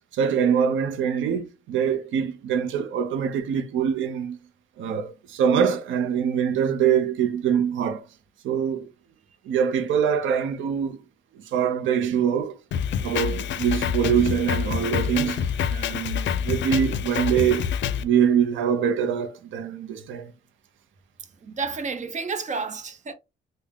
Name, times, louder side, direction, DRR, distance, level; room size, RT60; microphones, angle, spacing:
voice 1, 0.1-4.4 4.8-8.1 8.4-8.9 9.5-11.0 11.4-12.6 13.0-17.7 18.0-20.3, right 8 dB, 75° right, 0.6 m, -24 dB
Drum kit, 12.7-18.0, left 8 dB, 65° left, 0.5 m, -27 dB
voice 2, 21.4-23.1, right 4 dB, 35° right, 0.8 m, -30 dB
3.4 x 2.2 x 3.5 m
cardioid pair, 90°, 20 cm